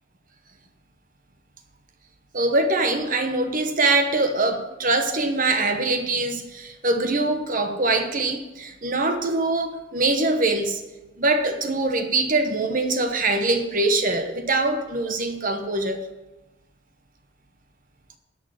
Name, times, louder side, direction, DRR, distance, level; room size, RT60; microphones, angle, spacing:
voice 1, 2.3-10.8 11.2-16.0, right 2 dB, 45° right, 6 dB, 1.1 m, -23 dB
11.0 x 6.4 x 7.8 m, 1.1 s
head